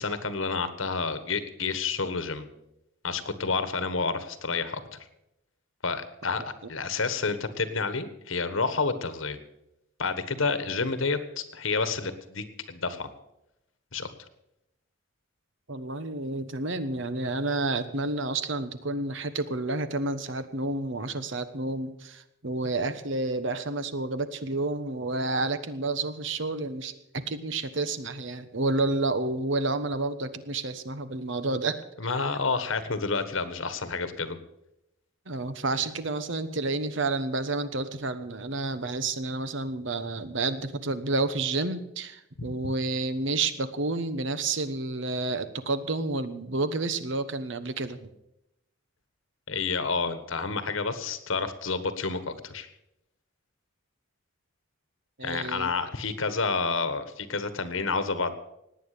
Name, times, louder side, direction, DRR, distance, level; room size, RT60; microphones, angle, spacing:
voice 1, 0.0-2.4 3.0-5.0 5.8-9.4 10.0-13.1 13.9-14.1 32.0-34.4 42.4-42.5 49.5-52.7 55.2-58.4, left 4 dB, 75° left, 11 dB, 1.4 m, -29 dB
voice 2, 15.7-31.8 35.3-48.0 55.2-55.7, right 2 dB, 65° right, 12 dB, 1.1 m, -30 dB
18.0 x 9.3 x 6.7 m, 0.85 s
head